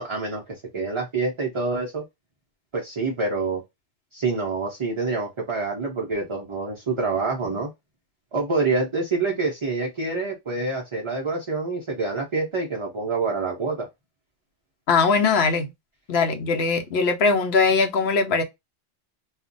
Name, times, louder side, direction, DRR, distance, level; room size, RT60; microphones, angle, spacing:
voice 1, 0.0-2.0 2.7-3.6 4.1-7.7 8.3-13.9, right 3 dB, 40° right, 0.4 m, -26 dB
voice 2, 14.9-15.7 16.1-18.4, left 4 dB, 65° left, 0.9 m, -21 dB
2.4 x 2.1 x 3.8 m
omnidirectional pair, 1.2 m